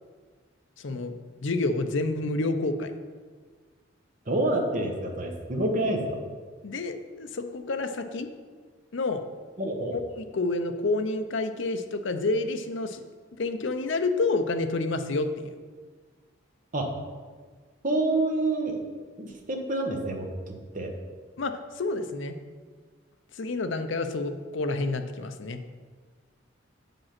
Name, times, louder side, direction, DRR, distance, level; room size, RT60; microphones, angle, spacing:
voice 1, 0.8-1.1 1.4-2.9 6.6-8.3 8.9-9.2 9.9-13.0 13.4-15.6 21.4-22.4 23.3-25.6, left 2 dB, 65° left, 8 dB, 0.6 m, -29 dB
voice 2, 4.3-6.2 9.6-10.0 16.7-16.9 17.8-18.8 19.2-20.3 20.7-20.9, right 2 dB, 40° right, 2 dB, 1.1 m, -27 dB
7.3 x 5.2 x 5.9 m, 1.5 s
head